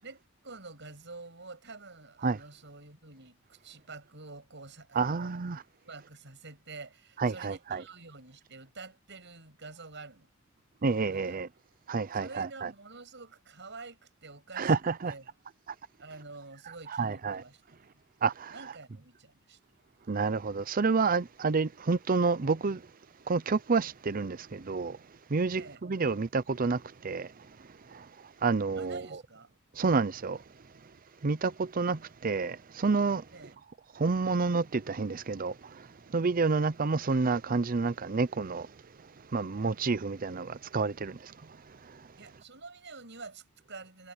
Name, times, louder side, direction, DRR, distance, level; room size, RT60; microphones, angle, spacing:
voice 1, 0.0-5.5 5.8-10.3 10.9-11.4 12.1-14.7 15.1-15.2 16.0-18.0 18.5-19.6 25.6-25.8 28.8-29.5 33.3-33.6 42.2-44.1, right 3 dB, 60° right, 7.6 m, -48 dB
voice 2, 4.9-5.6 7.2-7.8 10.8-11.5 11.9-12.7 14.6-15.1 16.9-17.4 18.2-18.6 20.1-22.8 23.3-25.0 25.3-27.3 27.9-28.0 28.4-29.1 29.8-30.4 31.2-33.2 34.0-35.5 36.1-38.7 39.3-41.3, right 4 dB, 40° right, 0.6 m, -29 dB
head